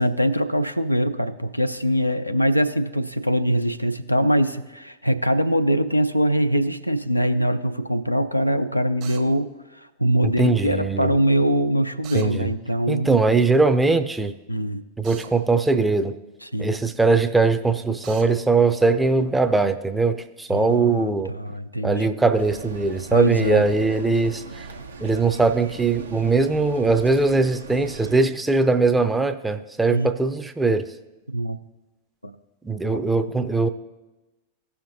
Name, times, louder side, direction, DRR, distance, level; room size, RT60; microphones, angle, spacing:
voice 1, 0.0-13.2 14.5-14.8 16.4-16.7 20.5-22.1 23.1-23.6 29.9-30.1 31.3-31.6 32.2-32.4 32.9-33.0, equal, 90° left, 8 dB, 0.4 m, -23 dB
Drill, 9.0-9.3 12.0-12.3 15.0-15.3 18.0-18.3, right 9 dB, 40° right, 1.0 m, -41 dB
voice 2, 10.2-11.1 12.1-12.5 12.9-14.3 15.0-16.1 16.6-21.3 21.8-24.7 25.0-30.9 32.6-33.7, right 3 dB, 10° right, 9 dB, 0.5 m, -21 dB
sound 1, 22.4-28.2, right 3 dB, 75° right, 0.8 m, -39 dB
16.5 x 5.7 x 2.7 m, 1.1 s
figure-of-eight pair, 90°, 0 cm